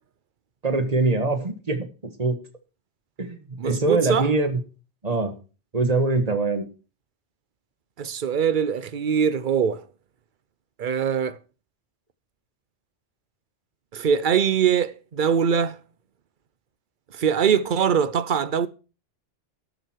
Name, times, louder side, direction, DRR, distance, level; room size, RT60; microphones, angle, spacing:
voice 1, 0.6-2.3 3.2-4.6 5.0-5.3 5.7-6.7, right 3 dB, 35° right, 1.7 m, -23 dB
voice 2, 3.6-4.3 8.0-9.8 10.8-11.4 13.9-15.8 17.1-18.7, right 7 dB, 50° right, 0.8 m, -22 dB
12.5 x 7.9 x 4.6 m
omnidirectional pair, 1.2 m